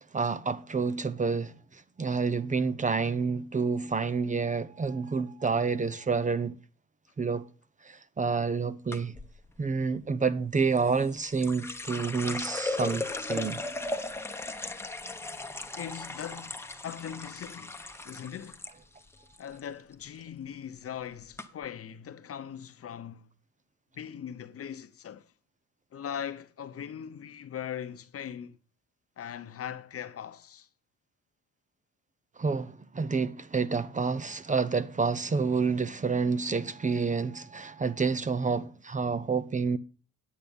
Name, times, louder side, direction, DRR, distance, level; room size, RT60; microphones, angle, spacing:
voice 1, 0.1-6.6 7.2-7.5 7.8-9.2 9.6-13.6 32.4-39.8, right 5 dB, 25° right, 0.7 m, -29 dB
sound 1, 8.9-9.3 10.8-18.7 19.0-19.6 19.9-20.3 20.9-21.0 21.4-21.5, left 2 dB, 10° left, 1.0 m, -37 dB
voice 2, 15.7-18.6 19.4-23.3 23.9-25.3 25.9-28.6 29.2-30.7, left 9 dB, 50° left, 0.9 m, -40 dB
9.2 x 8.7 x 5.3 m
cardioid pair, 90°, 30 cm